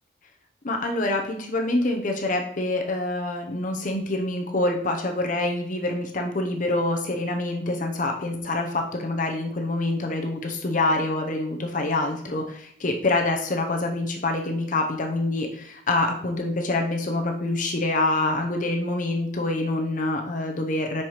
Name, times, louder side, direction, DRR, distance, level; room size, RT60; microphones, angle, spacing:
voice 1, 0.6-21.0, left 2 dB, 40° left, 2 dB, 0.7 m, -26 dB
7.6 x 5.7 x 3.1 m, 0.67 s
head